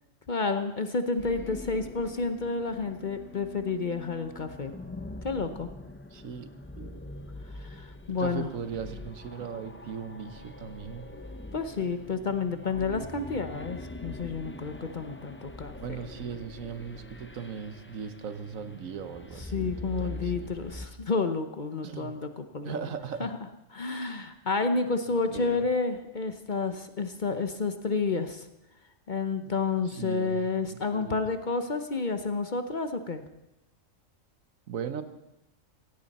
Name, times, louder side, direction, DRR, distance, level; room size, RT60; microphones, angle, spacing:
voice 1, 0.3-4.7 5.2-5.7 7.5-8.5 11.5-16.0 19.4-22.8 23.2-23.4 23.7-28.5 29.1-33.2, left 4 dB, 40° left, 8 dB, 0.9 m, -30 dB
sound 1, 1.2-20.9, left 1 dB, 10° left, 0.6 m, -43 dB
voice 2, 6.1-6.5 6.7-7.0 8.2-11.1 15.8-20.5 21.8-22.1 22.6-23.3 25.3-25.6 30.0-30.5 30.9-31.2 34.7-35.0, right 7 dB, 80° right, 10 dB, 1.4 m, -38 dB
16.5 x 16.5 x 4.2 m, 0.88 s
omnidirectional pair, 1.4 m